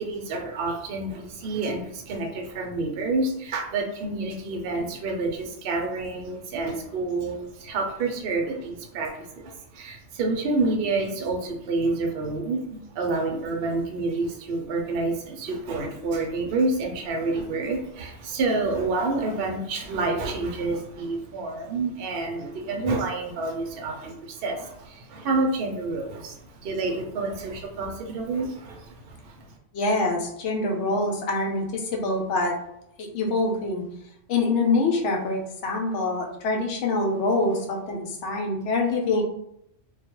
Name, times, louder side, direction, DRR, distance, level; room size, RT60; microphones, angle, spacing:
voice 1, 0.0-29.6, right 3 dB, 60° right, 2 dB, 0.7 m, -28 dB
voice 2, 29.7-32.6 33.0-33.8 34.3-39.2, left 2 dB, 75° left, 1 dB, 0.9 m, -25 dB
2.2 x 2.2 x 2.9 m, 0.77 s
omnidirectional pair, 1.3 m